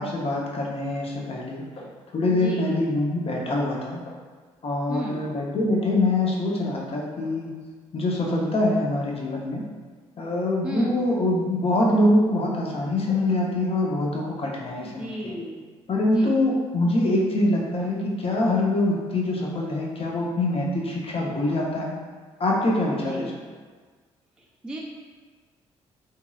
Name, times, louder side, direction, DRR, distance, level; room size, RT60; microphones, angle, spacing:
voice 1, 0.0-4.0 4.6-7.5 7.9-9.6 10.2-15.4 15.9-22.0 22.4-23.3, left 1 dB, 40° left, -2 dB, 0.7 m, -24 dB
voice 2, 2.3-2.7 4.9-5.3 10.6-11.1 14.8-15.6 16.0-16.4 23.0-23.4 24.4-24.8, equal, 5° right, -2 dB, 0.4 m, -35 dB
2.9 x 2.7 x 2.3 m, 1.5 s
hypercardioid pair, 55°, 14 cm